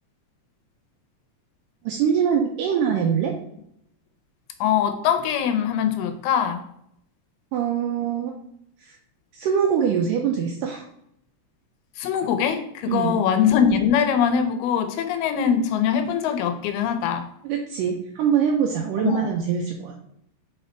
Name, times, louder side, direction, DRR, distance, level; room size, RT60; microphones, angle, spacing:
voice 1, 1.8-3.3 7.5-8.3 8.8-9.0 9.3-10.9 12.9-13.2 17.4-20.0, right 7 dB, 80° right, 1 dB, 2.0 m, -23 dB
voice 2, 4.6-6.6 12.0-17.3 19.0-19.2, left 8 dB, 85° left, 8 dB, 2.7 m, -22 dB
5.5 x 4.1 x 4.3 m, 0.73 s
omnidirectional pair, 4.4 m